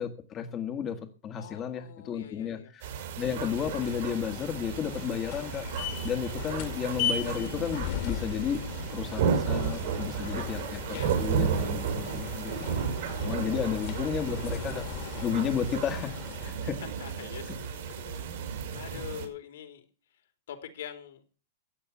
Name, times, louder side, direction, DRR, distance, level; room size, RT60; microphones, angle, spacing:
voice 1, 0.0-2.9 3.2-5.7 6.0-8.6 8.9-12.5 12.9-14.9 15.2-16.1 16.4-16.8, left 8 dB, 30° left, 6 dB, 1.5 m, -33 dB
voice 2, 1.4-2.7 6.5-6.8 10.2-11.1 13.4-13.6 16.4-19.8 20.1-20.2 20.5-21.2, left 9 dB, 80° left, 6 dB, 3.3 m, -45 dB
sound 1, 2.8-19.2, right 7 dB, 65° right, 5.9 m, -33 dB
sound 2, 3.2-16.7, left 9 dB, 50° left, 2.1 m, -38 dB
14.0 x 8.5 x 7.3 m, 0.37 s
hypercardioid pair, 130°, 0 cm